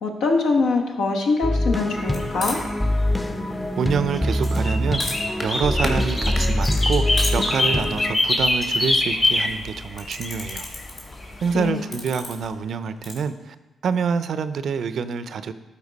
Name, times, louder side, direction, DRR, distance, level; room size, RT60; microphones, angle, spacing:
voice 1, 0.0-2.6 11.5-11.8, left 3 dB, 85° left, 0 dB, 1.1 m, -23 dB
sound 1, 1.4-8.1, left 1 dB, 10° left, 0.6 m, -24 dB
sound 2, 1.9-11.7, left 2 dB, 35° left, 1.6 m, -26 dB
sound 3, 2.1-13.2, left 2 dB, 60° left, 2.3 m, -38 dB
voice 2, 3.8-10.7 11.4-13.6 13.8-15.5, right 6 dB, 65° right, 12 dB, 0.4 m, -26 dB
12.5 x 4.6 x 4.1 m, 1.2 s
cardioid pair, 70°, 0 cm